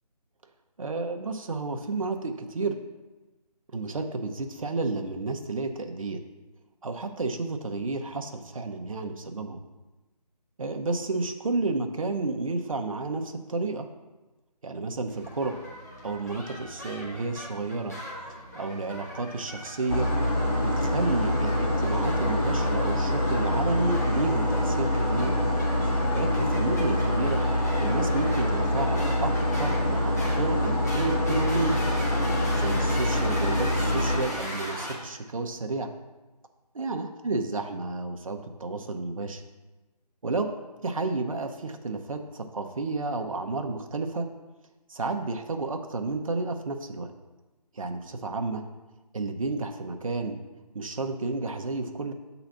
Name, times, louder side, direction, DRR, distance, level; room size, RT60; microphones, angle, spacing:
voice 1, 0.8-2.8 3.7-6.2 6.8-9.6 10.6-13.9 14.6-15.6 16.0-18.0 18.5-20.1 20.6-25.3 25.8-27.4 27.8-29.3 29.6-31.8 32.5-35.9 36.7-39.4 40.2-40.5 40.8-44.3 44.9-47.1 47.7-48.6 49.1-50.4 50.7-52.1, right 3 dB, 55° right, 5 dB, 0.7 m, -31 dB
sound 1, 15.1-34.9, equal, 25° left, 1.0 m, -39 dB
sound 2, 19.9-34.2, left 1 dB, 60° left, 2.3 m, -25 dB
6.1 x 4.0 x 5.7 m, 1.1 s
figure-of-eight pair, 170°, 21 cm